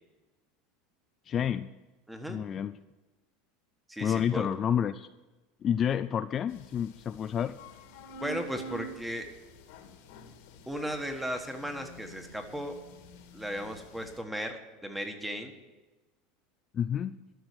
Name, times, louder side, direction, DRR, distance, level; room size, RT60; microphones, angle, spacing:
voice 1, 1.3-1.7 2.3-2.7 4.0-5.1 5.6-7.6 16.7-17.2, left 9 dB, 30° left, 12 dB, 0.3 m, -29 dB
voice 2, 2.1-2.4 3.9-4.5 8.1-9.3 10.7-12.7 13.3-15.5, equal, 5° right, 6 dB, 1.4 m, -36 dB
sound 1, 6.5-14.2, right 2 dB, 75° left, 1.9 m, -48 dB
13.0 x 6.2 x 9.5 m, 1.2 s
supercardioid pair, 140°, 0 cm